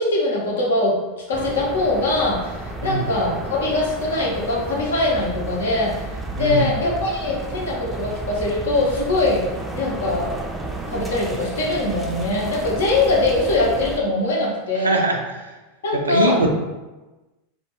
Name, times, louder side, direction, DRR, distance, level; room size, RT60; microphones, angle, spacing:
voice 1, 0.0-5.9 6.3-9.4 9.7-10.4 10.9-15.1 15.8-16.4, left 2 dB, 75° left, -2 dB, 0.7 m, -22 dB
sound 1, 1.3-14.0, right 2 dB, 10° right, 0.4 m, -32 dB
voice 2, 6.4-6.7 14.8-15.2 16.1-16.5, right 2 dB, 85° right, 3 dB, 0.3 m, -20 dB
2.3 x 2.2 x 2.9 m, 1.1 s
hypercardioid pair, 90°, 0 cm